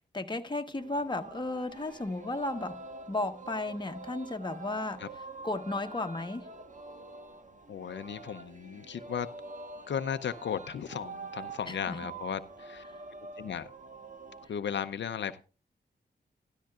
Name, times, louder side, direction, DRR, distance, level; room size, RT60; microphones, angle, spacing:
voice 1, 0.1-2.7 3.1-5.0 5.4-6.5 11.7-12.0 12.9-13.0, left 2 dB, 25° left, 1.2 m, -34 dB
Singing, 0.8-14.5, right 3 dB, 45° right, 1.3 m, -46 dB
voice 2, 7.7-9.3 9.9-12.8 13.4-13.7 14.5-15.4, left 8 dB, 85° left, 0.6 m, -35 dB
13.0 x 13.0 x 2.4 m
wide cardioid pair, 85°, 18 cm